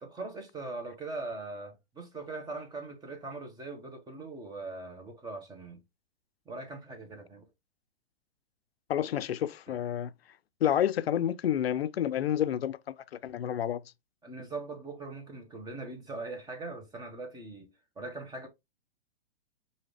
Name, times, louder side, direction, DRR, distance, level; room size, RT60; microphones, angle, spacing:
voice 1, 0.0-5.8 6.5-7.4 9.7-9.8 14.2-17.7 18.0-18.5, right 3 dB, 15° right, 1.1 m, -41 dB
voice 2, 8.9-10.1 10.6-13.8, left 10 dB, 85° left, 0.4 m, -29 dB
4.9 x 2.7 x 3.2 m
hypercardioid pair, 120°, 30 cm